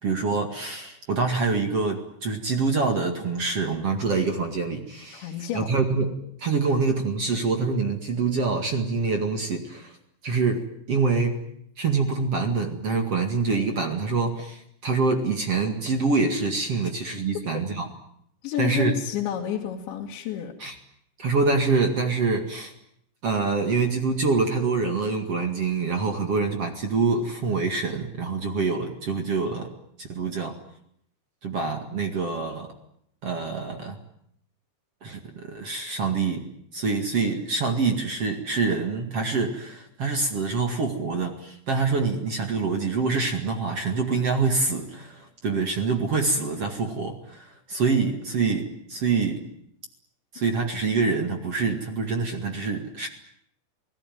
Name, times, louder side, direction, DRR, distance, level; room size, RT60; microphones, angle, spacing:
voice 1, 0.0-9.9 10.2-10.6 10.9-11.4 11.8-17.9 18.6-18.9 20.6-20.7 21.2-22.7 23.2-29.7 30.0-30.5 31.4-32.7 33.2-34.0 35.0-36.4 36.7-49.4 50.3-53.1, right 4 dB, 45° right, 4 dB, 2.3 m, -25 dB
voice 2, 5.1-5.7 17.3-17.4 18.4-20.5, left 10 dB, 80° left, -1 dB, 4.3 m, -30 dB
27.5 x 19.0 x 9.2 m, 0.72 s
omnidirectional pair, 5.2 m